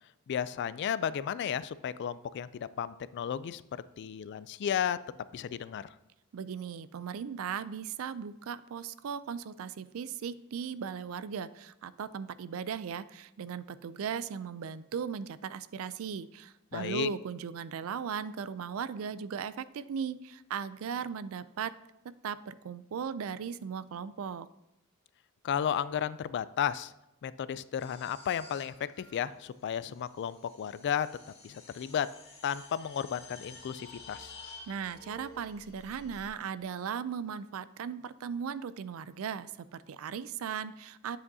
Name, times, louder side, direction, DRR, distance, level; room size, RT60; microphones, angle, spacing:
voice 1, 0.3-3.6 4.0-5.0 5.3-5.9 16.7-17.1 25.4-26.9 27.2-31.1 31.4-32.1 32.4-34.3, left 8 dB, 55° left, 16 dB, 0.3 m, -33 dB
voice 2, 6.3-21.7 22.0-24.5 34.7-41.2, right 7 dB, 70° right, 16 dB, 0.4 m, -37 dB
sound 1, 27.8-36.3, left 3 dB, 30° left, 1.7 m, -52 dB
9.5 x 7.7 x 2.7 m, 0.88 s
head